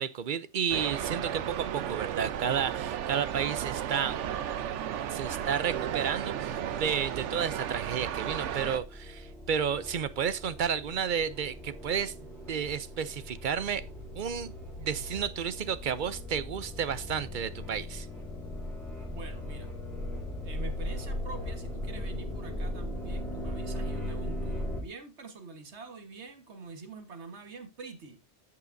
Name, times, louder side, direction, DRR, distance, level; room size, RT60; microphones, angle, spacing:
voice 1, 0.0-4.2 5.1-12.1 12.5-13.8 14.1-14.5 14.8-18.1, right 7 dB, 55° right, 0.6 m, -32 dB
sound 1, 0.7-8.8, right 9 dB, 90° right, 1.0 m, -34 dB
sound 2, 6.6-24.8, left 1 dB, ahead, 3.4 m, -38 dB
voice 2, 19.1-19.7 20.4-28.2, right 3 dB, 70° right, 1.6 m, -45 dB
14.5 x 5.6 x 2.6 m
omnidirectional pair, 1.2 m